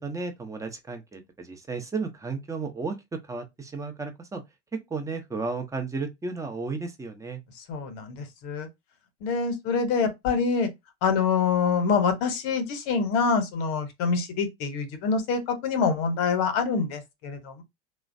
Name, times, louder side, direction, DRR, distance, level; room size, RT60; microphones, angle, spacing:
voice 1, 0.0-3.0 3.3-4.4 4.9-7.4, right 4 dB, 10° right, 0.7 m, -33 dB
voice 2, 7.6-8.7 9.2-10.7 11.0-17.6, left 5 dB, 50° left, 0.9 m, -26 dB
3.1 x 2.1 x 2.6 m
hypercardioid pair, 85°, 36 cm